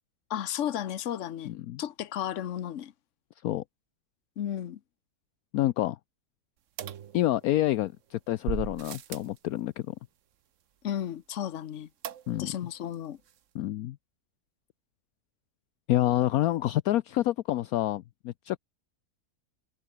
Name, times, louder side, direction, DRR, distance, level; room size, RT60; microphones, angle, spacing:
voice 1, 0.3-1.5 1.8-2.9 4.4-4.8 10.8-11.9 12.4-13.2, left 10 dB, 55° left, 1.1 m, -33 dB
voice 2, 1.5-1.8 3.4-3.6 5.5-6.0 7.1-9.9 12.3-12.5 13.5-14.0 15.9-18.6, left 14 dB, 75° left, 1.0 m, -28 dB
sound 1, 6.8-7.8 8.4-9.4 12.0-12.6 12.9-13.0 13.3-13.4, right 9 dB, 55° right, 1.2 m, -38 dB
omnidirectional pair, 1.7 m